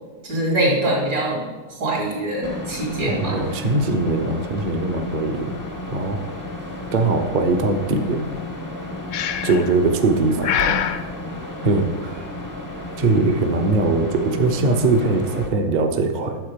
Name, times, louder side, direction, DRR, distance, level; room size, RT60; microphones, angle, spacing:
voice 1, 0.2-1.4 1.8-3.4, right 1 dB, 75° right, -3 dB, 3.5 m, -23 dB
sound 1, 2.4-15.5, left 1 dB, 25° left, 0.4 m, -33 dB
voice 2, 3.0-5.5 5.9-6.2 6.9-8.2 9.4-10.8 11.6-12.2 13.0-16.4, right 3 dB, 50° right, 4 dB, 0.5 m, -21 dB
Breathing, 9.1-9.7 10.4-11.0, left 9 dB, 75° left, 0.8 m, -23 dB
9.4 x 7.3 x 5.1 m, 1.3 s
omnidirectional pair, 2.0 m